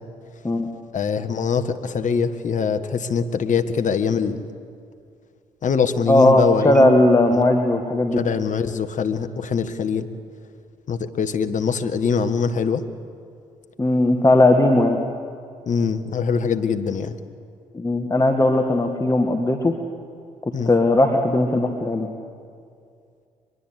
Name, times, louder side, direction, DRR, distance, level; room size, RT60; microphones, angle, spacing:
voice 1, 0.9-4.5 5.6-6.8 7.3-7.4 8.2-10.1 10.9-12.8 15.7-17.2 20.5-20.7, left 6 dB, 50° left, 9 dB, 1.5 m, -23 dB
voice 2, 6.1-8.2 13.8-15.0 17.7-19.8 20.7-22.1, left 1 dB, 20° left, 4 dB, 1.9 m, -18 dB
Marimba xylophone, 6.7-8.9, right 1 dB, 55° right, 2.9 m, -35 dB
23.0 x 22.5 x 8.1 m, 2.3 s
hypercardioid pair, 45°, 16 cm